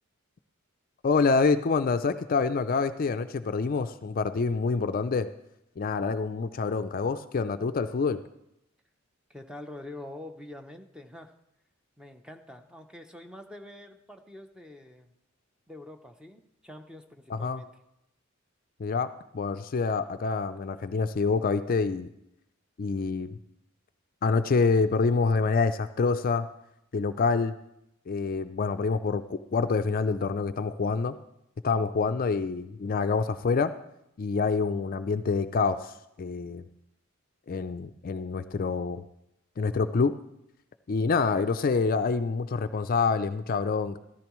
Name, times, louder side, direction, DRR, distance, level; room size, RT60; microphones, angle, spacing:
voice 1, 1.0-5.3 5.8-8.2 17.3-17.6 18.8-19.1 19.3-22.1 22.8-23.3 24.2-26.5 26.9-27.5 28.1-31.2 31.6-33.7 34.2-36.6 37.5-39.0 39.6-40.1 40.9-44.0, left 4 dB, 45° left, 10 dB, 0.4 m, -26 dB
voice 2, 9.3-11.3 12.0-15.1 15.7-17.7, left 1 dB, 5° right, 6 dB, 0.6 m, -45 dB
14.0 x 13.0 x 3.1 m, 0.83 s
head